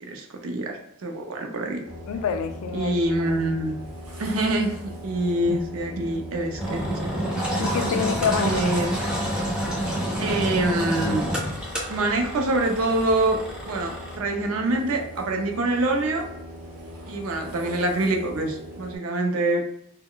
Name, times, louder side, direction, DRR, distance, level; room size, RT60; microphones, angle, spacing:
voice 1, 0.0-1.8 2.7-3.8 4.2-7.1 8.3-8.9 10.2-11.3 11.9-13.4 13.7-16.3 17.1-19.6, right 2 dB, 70° right, 4 dB, 0.5 m, -25 dB
sound 1, 1.8-19.0, equal, 90° right, 0.9 m, -40 dB
voice 2, 2.1-3.0 7.6-8.8, left 6 dB, 80° left, 9 dB, 0.3 m, -27 dB
Engine, 6.6-14.2, right 1 dB, 5° right, 0.4 m, -28 dB
2.2 x 2.1 x 3.7 m, 0.75 s
head